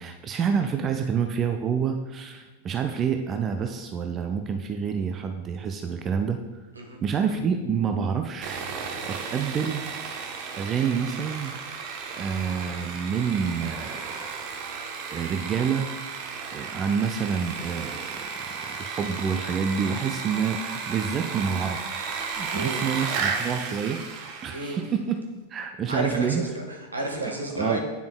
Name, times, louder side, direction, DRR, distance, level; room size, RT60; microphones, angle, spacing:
voice 1, 0.0-6.4 7.0-8.6 9.1-9.9 10.6-11.5 12.2-14.4 15.1-15.9 16.5-18.3 18.6-21.8 22.3-25.2 25.5-26.4 27.5-27.8, right 7 dB, 25° right, 6 dB, 0.4 m, -28 dB
Sawing, 8.4-24.8, right 5 dB, 45° right, 0.9 m, -34 dB
voice 2, 22.5-22.8 24.5-24.8 25.9-27.8, right 1 dB, 75° right, 1 dB, 1.3 m, -31 dB
9.5 x 6.9 x 2.2 m, 1.1 s
figure-of-eight pair, 90°, 0 cm